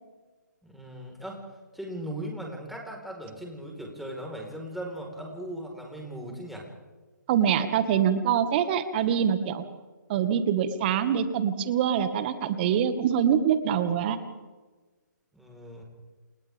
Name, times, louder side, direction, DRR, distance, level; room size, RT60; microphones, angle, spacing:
voice 1, 0.6-1.4 1.7-6.7 15.3-15.8, right 1 dB, ahead, -1 dB, 4.7 m, -38 dB
voice 2, 7.3-9.6 10.1-14.2, right 8 dB, 30° right, 9 dB, 2.0 m, -24 dB
30.0 x 29.0 x 3.7 m, 1.3 s
figure-of-eight pair, 145°, 10 cm